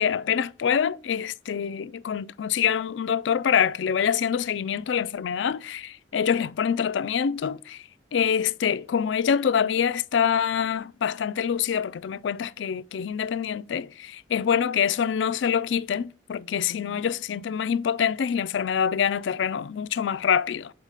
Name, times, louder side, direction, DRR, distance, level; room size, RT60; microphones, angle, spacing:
voice 1, 0.0-7.8 8.1-20.7, left 7 dB, 70° left, 0.4 m, -25 dB
6.5 x 4.6 x 4.8 m
head